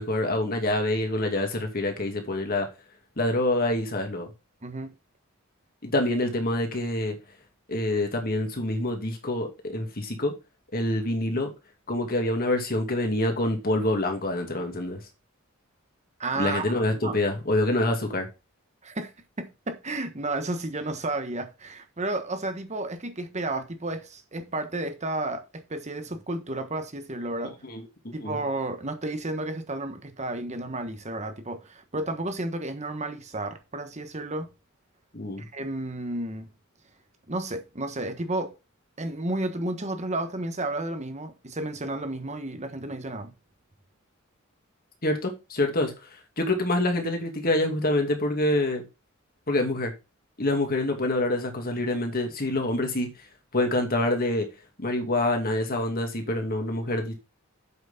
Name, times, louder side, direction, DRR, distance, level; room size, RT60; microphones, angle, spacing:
voice 1, 0.0-2.7 3.2-4.3 5.8-7.2 7.7-10.3 10.7-11.5 11.9-15.0 16.4-18.3 27.4-28.4 35.1-35.5 45.0-45.9 46.4-48.8 49.5-49.9 50.4-53.1 53.5-54.5 54.8-57.1, left 1 dB, 45° left, 2.5 m, -26 dB
voice 2, 4.6-4.9 16.2-16.7 17.0-17.2 18.8-19.1 19.4-27.5 28.1-34.5 35.5-36.5 37.3-38.5 39.0-43.3, right 2 dB, 35° right, 1.3 m, -32 dB
8.1 x 6.2 x 5.8 m
head